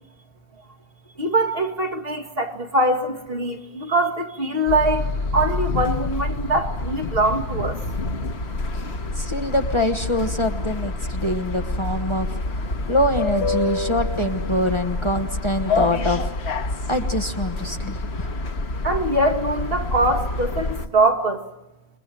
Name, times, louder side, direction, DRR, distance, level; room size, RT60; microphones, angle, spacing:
voice 1, 1.2-5.0 5.3-7.8 18.8-21.4, right 1 dB, 60° right, 5 dB, 2.1 m, -22 dB
sound 1, 4.7-20.9, left 2 dB, 80° left, 1.5 m, -27 dB
voice 2, 9.2-12.3 12.9-16.2 16.9-18.3, left 1 dB, 30° left, 7 dB, 1.1 m, -24 dB
28.5 x 21.5 x 7.5 m, 0.97 s
omnidirectional pair, 1.1 m